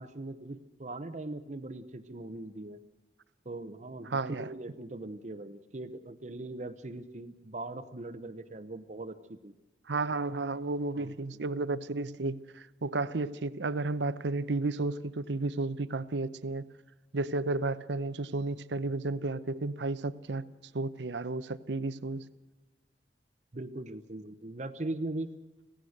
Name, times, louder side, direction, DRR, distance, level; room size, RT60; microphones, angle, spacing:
voice 1, 0.0-2.8 3.5-9.5 10.9-11.4 23.5-25.3, right 2 dB, 40° right, 0.8 m, -40 dB
voice 2, 4.1-4.5 9.9-16.7 17.1-20.4 20.7-22.3, right 3 dB, 85° right, 0.7 m, -32 dB
25.5 x 16.5 x 6.5 m
head